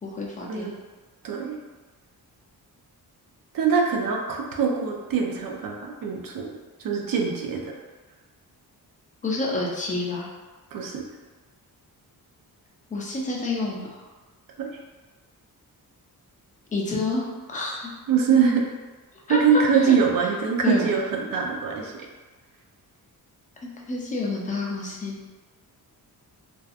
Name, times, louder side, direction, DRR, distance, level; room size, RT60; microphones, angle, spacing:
voice 1, 0.0-0.7 9.2-10.3 12.9-14.0 16.7-17.9 19.3-19.4 19.8-20.0 20.6-20.9 23.6-25.2, left 3 dB, 20° left, -3 dB, 0.4 m, -29 dB
voice 2, 1.2-1.6 3.5-6.5 6.8-7.7 10.7-11.0 14.6-14.7 18.1-18.6 19.3-21.9, right 6 dB, 65° right, 1 dB, 0.5 m, -23 dB
2.6 x 2.3 x 2.4 m, 1.3 s
wide cardioid pair, 140°, 37 cm